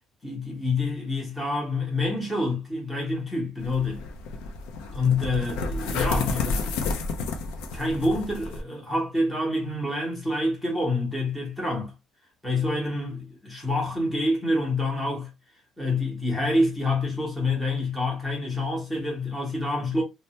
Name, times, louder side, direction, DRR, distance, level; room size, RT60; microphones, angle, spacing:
voice 1, 0.2-4.0 4.9-7.0 7.7-11.9 12.4-15.3 15.8-20.0, left 2 dB, ahead, 0.8 m, -27 dB
sound 1, 3.6-8.6, left 3 dB, 85° left, 0.5 m, -31 dB
3.2 x 2.0 x 2.8 m
cardioid pair, 180°, 0 cm